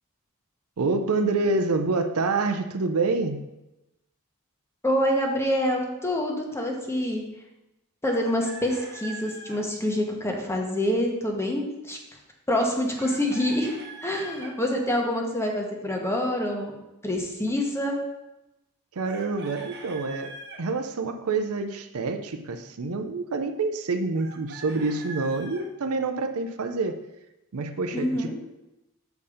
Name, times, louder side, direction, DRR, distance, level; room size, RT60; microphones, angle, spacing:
voice 1, 0.8-3.4 18.9-27.0 27.5-28.3, right 3 dB, 75° right, 8 dB, 0.6 m, -27 dB
voice 2, 4.8-7.2 8.0-12.0 12.5-13.7 14.0-16.7 17.0-18.0 27.9-28.3, left 1 dB, 10° left, 1 dB, 1.0 m, -26 dB
Chicken rooster, 8.1-9.6 13.0-14.5 19.0-20.6 24.2-25.7, right 3 dB, 50° right, 1.1 m, -42 dB
6.9 x 4.3 x 4.9 m, 0.95 s
head